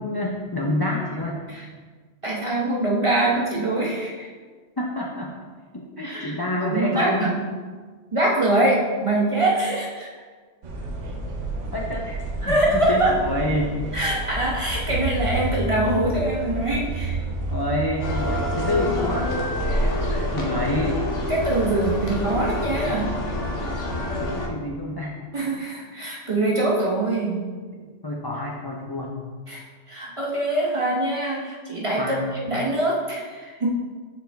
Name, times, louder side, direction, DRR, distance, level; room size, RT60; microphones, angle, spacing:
voice 1, 0.0-1.4 4.8-5.4 5.7-7.3 11.7-12.2 12.4-13.7 17.5-19.3 20.3-21.0 24.3-25.1 27.8-29.1 32.0-32.4, left 1 dB, 30° left, -3 dB, 0.5 m, -27 dB
voice 2, 2.2-4.3 6.0-7.4 8.1-10.1 12.4-13.1 13.9-17.2 19.7-20.0 21.3-23.2 25.3-27.5 29.5-32.2 32.5-33.7, right 2 dB, 30° right, -4 dB, 0.9 m, -24 dB
sound 1, 10.6-20.1, right 2 dB, 75° right, 1.2 m, -30 dB
sound 2, 18.0-24.5, left 1 dB, 80° left, 1.2 m, -27 dB
6.8 x 4.5 x 3.4 m, 1.5 s
omnidirectional pair, 1.2 m